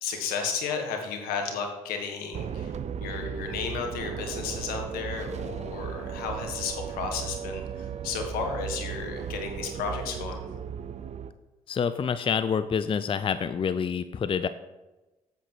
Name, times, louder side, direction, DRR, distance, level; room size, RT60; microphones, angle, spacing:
voice 1, 0.0-2.7 3.0-10.4, left 5 dB, 80° left, 4 dB, 1.5 m, -33 dB
sound 1, 2.3-11.3, right 7 dB, 50° right, 0.6 m, -36 dB
voice 2, 11.7-14.5, left 6 dB, 35° left, 12 dB, 0.5 m, -27 dB
8.2 x 7.7 x 4.5 m, 1.1 s
supercardioid pair, 55°, 15 cm